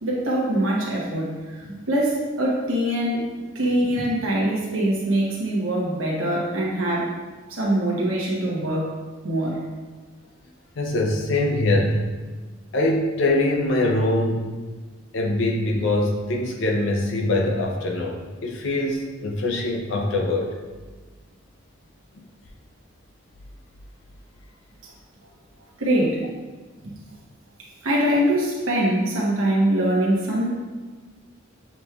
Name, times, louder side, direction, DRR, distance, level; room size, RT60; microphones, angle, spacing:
voice 1, 0.0-3.2 3.5-7.1 7.5-8.9 9.2-9.6 25.8-26.2 26.8-26.9 27.8-30.5, right 1 dB, 80° right, -4 dB, 1.0 m, -23 dB
voice 2, 10.8-12.0 12.7-14.5 15.1-20.5, left 2 dB, 65° left, 1 dB, 0.5 m, -23 dB
6.9 x 3.0 x 2.3 m, 1.3 s
head